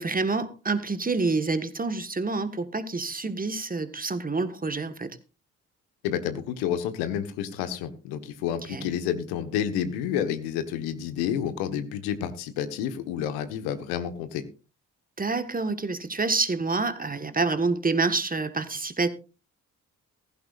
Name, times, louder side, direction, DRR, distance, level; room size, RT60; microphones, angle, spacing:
voice 1, 0.0-5.1 8.7-8.9 15.2-19.1, right 3 dB, 20° right, 1.5 m, -27 dB
voice 2, 6.0-14.4, left 9 dB, 70° left, 1.4 m, -30 dB
15.5 x 15.0 x 2.5 m
hypercardioid pair, 45°, 39 cm